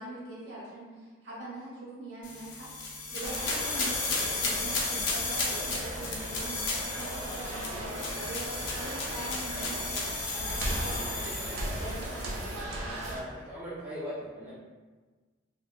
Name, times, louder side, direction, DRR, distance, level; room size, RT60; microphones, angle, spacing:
voice 1, 0.0-2.7 3.1-9.8 10.3-12.4, right 2 dB, 60° right, -8 dB, 1.0 m, -43 dB
sound 1, 2.2-12.2, left 3 dB, 65° left, 0.5 m, -34 dB
sound 2, 3.2-13.2, right 1 dB, 85° right, 0.4 m, -37 dB
sound 3, 6.8-13.1, right 1 dB, 25° right, 1.1 m, -50 dB
voice 2, 13.1-14.5, equal, 10° right, -11 dB, 0.5 m, -39 dB
2.8 x 2.1 x 2.2 m, 1.4 s
head